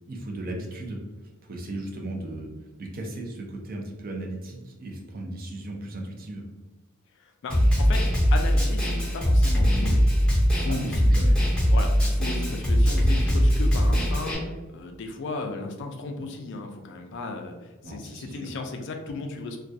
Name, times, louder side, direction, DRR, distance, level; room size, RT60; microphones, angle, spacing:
voice 1, 0.1-1.0 1.5-2.5 2.8-6.5 10.7-11.4 17.8-18.5, right 1 dB, 45° right, 0 dB, 0.4 m, -36 dB
voice 2, 7.2-8.0 8.3-11.1 11.7-19.6, left 3 dB, 60° left, 4 dB, 0.3 m, -35 dB
Snare drum, 7.5-14.3, equal, 5° left, 0.6 m, -21 dB
2.2 x 2.2 x 2.6 m, 1.2 s
head